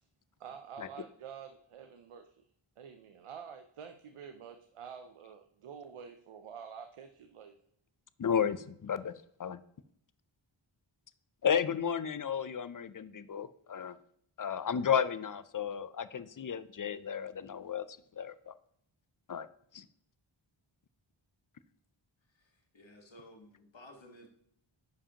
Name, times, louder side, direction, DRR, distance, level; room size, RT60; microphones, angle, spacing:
voice 1, 0.4-2.3 2.8-7.5, right 7 dB, 85° right, 7 dB, 0.6 m, -48 dB
voice 2, 8.2-9.1 9.4-9.6 11.4-14.0 14.4-18.5 19.3-19.5 19.7-19.8, left 8 dB, 45° left, 15 dB, 0.4 m, -33 dB
voice 3, 22.3-24.3, left 1 dB, 65° left, 2 dB, 1.4 m, -55 dB
10.5 x 4.9 x 2.8 m, 0.70 s
wide cardioid pair, 40°, 50 cm